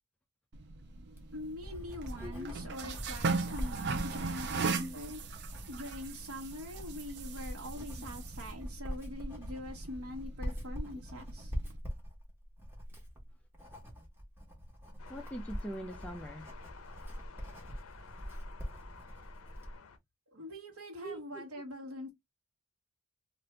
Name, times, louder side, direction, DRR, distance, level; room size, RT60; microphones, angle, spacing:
sound 1, 0.5-11.8, right 4 dB, 50° right, 0.4 m, -39 dB
Writing, 1.1-19.8, equal, 10° right, 1.0 m, -43 dB
voice 1, 1.3-5.2 5.7-11.5 20.3-22.1, left 1 dB, 90° right, 1.3 m, -43 dB
sound 2, 15.0-20.0, left 5 dB, 70° left, 0.6 m, -53 dB
voice 2, 15.1-16.5 21.0-21.4, right 1 dB, 5° left, 0.4 m, -42 dB
2.7 x 2.5 x 3.2 m
head